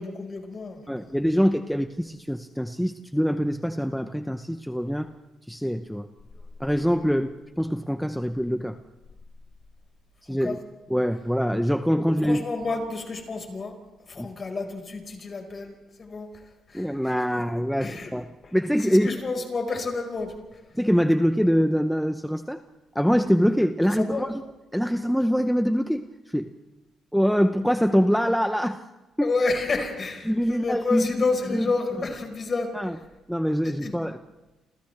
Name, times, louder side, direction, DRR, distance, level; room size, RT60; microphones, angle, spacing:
voice 1, 0.0-1.1 10.3-10.6 11.9-13.7 14.1-15.7 16.0-16.3 16.7-17.0 17.3-17.4 17.8-18.1 18.9-20.3 24.0-24.3 29.2-33.0 33.6-33.9, left 3 dB, 40° left, 3 dB, 4.9 m, -30 dB
voice 2, 0.9-5.1 5.5-6.1 6.6-8.8 10.3-10.6 10.9-12.4 14.2-14.3 16.7-19.1 20.7-22.6 22.9-24.4 24.7-26.5 27.1-28.8 29.2-29.3 30.2-31.1 31.5-31.7 32.7-32.9 33.3-34.2, equal, ahead, 8 dB, 0.8 m, -24 dB
29.0 x 28.5 x 3.4 m, 1.0 s
cardioid pair, 90°, 0 cm